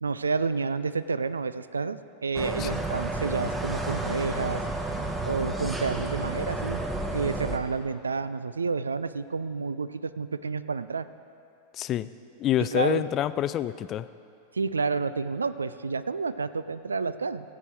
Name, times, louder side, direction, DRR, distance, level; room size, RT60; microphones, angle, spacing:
voice 1, 0.0-4.6 5.3-6.8 7.1-11.1 12.6-13.0 14.5-17.5, right 4 dB, 75° right, 14 dB, 0.3 m, -30 dB
sound 1, 2.3-7.6, right 2 dB, 10° right, 1.0 m, -31 dB
voice 2, 11.8-12.1 12.4-14.1, left 12 dB, 30° left, 15 dB, 0.3 m, -27 dB
16.0 x 8.4 x 4.5 m, 2.7 s
figure-of-eight pair, 90°, 0 cm